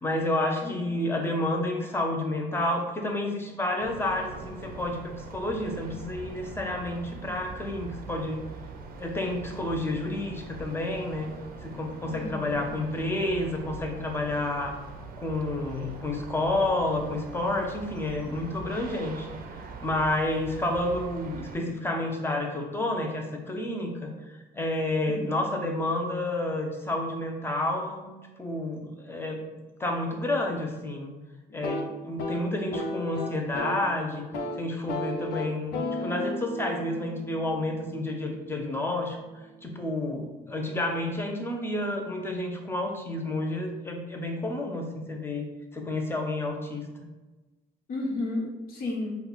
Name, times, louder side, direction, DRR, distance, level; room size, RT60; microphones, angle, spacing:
voice 1, 0.0-8.4 9.0-11.3 11.6-14.7 15.2-19.3 19.5-28.1 28.4-29.4 29.8-31.1 31.5-34.2 34.5-39.2 39.6-46.9, left 1 dB, 15° left, 2 dB, 0.8 m, -30 dB
voice 2, 0.6-1.0 12.1-12.6 25.1-25.3 47.9-49.2, left 2 dB, 60° left, -3 dB, 1.5 m, -33 dB
sound 1, 3.8-21.6, right 4 dB, 60° right, 0.6 m, -42 dB
sound 2, 31.5-33.9 34.2-34.6 34.9-38.7, left 1 dB, 80° left, 0.8 m, -35 dB
5.4 x 2.3 x 4.0 m, 1.2 s
cardioid pair, 110°, 17 cm